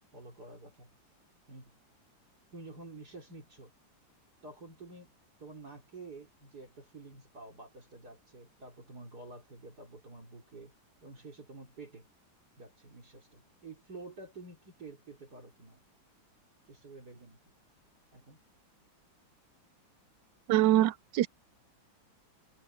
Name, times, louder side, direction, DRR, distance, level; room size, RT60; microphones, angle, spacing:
voice 1, 0.1-0.9 1.5-1.7 2.5-3.7 4.4-5.1 5.4-10.7 11.0-12.1 12.6-15.8 16.7-17.4 18.1-18.4, right 3 dB, 55° right, 4.1 m, -49 dB
voice 2, 20.5-21.3, right 13 dB, 75° right, 1.3 m, -24 dB
omnidirectional pair, 2.1 m